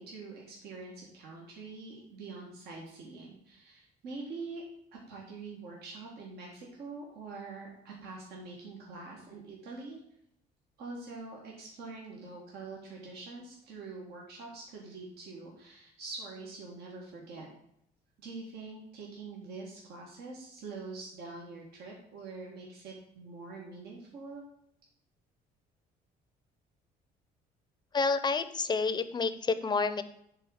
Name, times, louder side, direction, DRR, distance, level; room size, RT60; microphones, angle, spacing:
voice 1, 0.0-4.6 5.1-10.0 10.8-17.5 18.2-24.4, right 3 dB, 75° right, -2 dB, 1.8 m, -45 dB
voice 2, 27.9-30.0, left 4 dB, 25° left, 12 dB, 0.6 m, -29 dB
7.6 x 3.7 x 6.5 m, 0.75 s
cardioid pair, 110°, 17 cm